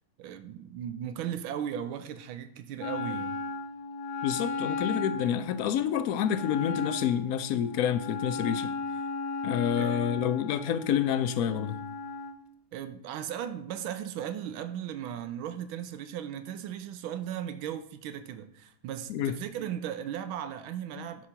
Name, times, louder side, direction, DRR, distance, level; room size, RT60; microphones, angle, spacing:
voice 1, 0.2-3.4 9.8-10.0 12.7-21.3, right 10 dB, 85° right, 1.5 m, -37 dB
Wind instrument woodwind instrument, 2.8-12.4, left 3 dB, 65° left, 1.3 m, -36 dB
voice 2, 4.2-8.7 9.4-11.8 19.1-19.3 21.0-21.1, left 9 dB, 85° left, 0.7 m, -28 dB
11.0 x 4.9 x 5.7 m
omnidirectional pair, 2.2 m